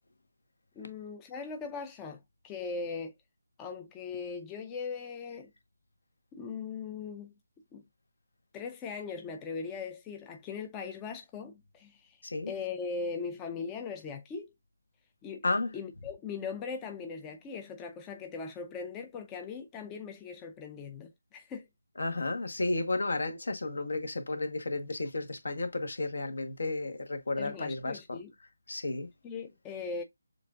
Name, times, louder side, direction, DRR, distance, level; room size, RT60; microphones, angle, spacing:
voice 1, 0.8-3.1 3.6-5.5 6.3-7.3 7.7-7.8 8.5-12.2 12.5-14.5 15.2-15.5 15.7-21.7 27.4-28.3 29.2-30.0, left 5 dB, 15° left, 0.4 m, -39 dB
voice 2, 22.0-28.2 28.7-29.1, left 2 dB, 70° left, 1.2 m, -32 dB
6.9 x 2.5 x 2.4 m
figure-of-eight pair, 165°, 0 cm